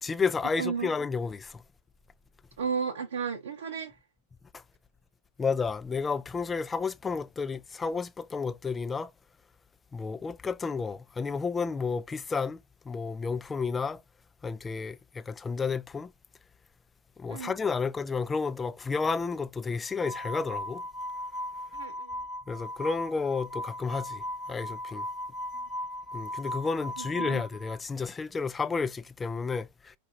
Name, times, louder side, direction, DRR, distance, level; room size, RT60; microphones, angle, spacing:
voice 1, 0.0-1.6 5.4-9.1 9.9-12.6 12.9-14.0 14.4-16.1 17.2-20.8 22.5-24.2 24.5-25.1 26.1-29.9, left 5 dB, 15° left, 0.3 m, -31 dB
voice 2, 0.6-0.9 2.6-4.0 17.3-17.5 21.7-22.2 25.5-25.6 27.0-27.4, right 6 dB, 60° right, 0.7 m, -34 dB
sound 1, 19.9-27.8, left 1 dB, 35° right, 0.9 m, -37 dB
4.6 x 2.4 x 4.3 m
figure-of-eight pair, 90°, 0 cm